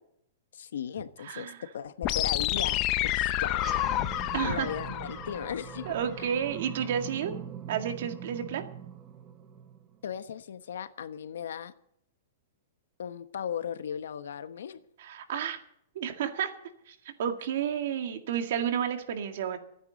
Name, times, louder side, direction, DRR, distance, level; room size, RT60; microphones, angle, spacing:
voice 1, 0.5-3.6 4.4-5.9 6.2-6.3 10.0-11.7 13.0-14.8, left 8 dB, 80° left, 11 dB, 1.1 m, -37 dB
voice 2, 1.2-1.6 4.3-4.7 5.9-7.4 7.7-8.6 15.0-15.6 16.0-16.5 16.9-19.6, right 8 dB, 50° right, 6 dB, 2.0 m, -31 dB
sound 1, 2.0-6.0, left 14 dB, 25° left, 0.6 m, -29 dB
sound 2, 3.5-10.2, right 9 dB, 20° right, 0.8 m, -42 dB
26.0 x 9.6 x 4.1 m, 0.73 s
hypercardioid pair, 175°, 0 cm